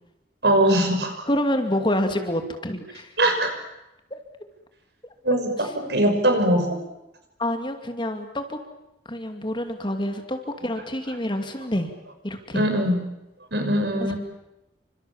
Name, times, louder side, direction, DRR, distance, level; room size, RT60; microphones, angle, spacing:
voice 1, 0.4-1.2 3.2-3.5 5.2-6.8 12.5-13.0 13.5-14.2, right 1 dB, 70° right, 6 dB, 6.2 m, -21 dB
voice 2, 1.3-3.1 4.1-4.2 7.4-8.6 9.1-11.9 12.2-12.7 14.0-14.1, left 1 dB, 25° left, 6 dB, 2.6 m, -27 dB
28.0 x 26.0 x 7.3 m, 0.89 s
head